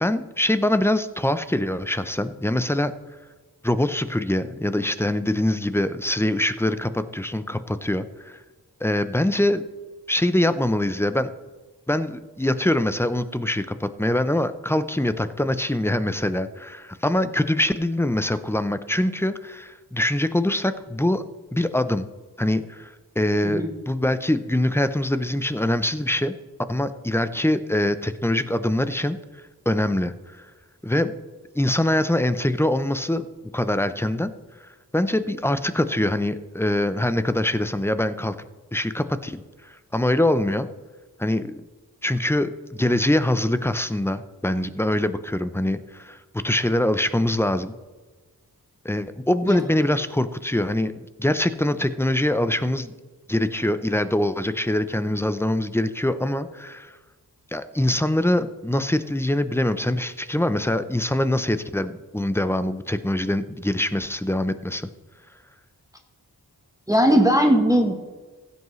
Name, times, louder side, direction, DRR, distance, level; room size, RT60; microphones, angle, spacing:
voice 1, 0.0-2.9 3.6-8.3 8.8-9.6 10.1-11.3 11.9-21.2 21.5-22.0 22.4-26.3 26.7-29.2 29.7-30.1 30.8-31.1 31.6-33.3 33.5-34.3 34.9-38.3 38.7-40.7 41.2-41.6 42.0-46.2 46.4-47.7 48.8-52.9 53.3-56.9 57.5-64.9, left 1 dB, 5° left, 12 dB, 0.6 m, -23 dB
voice 2, 66.9-68.0, equal, 10° right, 3 dB, 1.1 m, -19 dB
16.0 x 8.2 x 3.2 m, 1.3 s
wide cardioid pair, 55°, 37 cm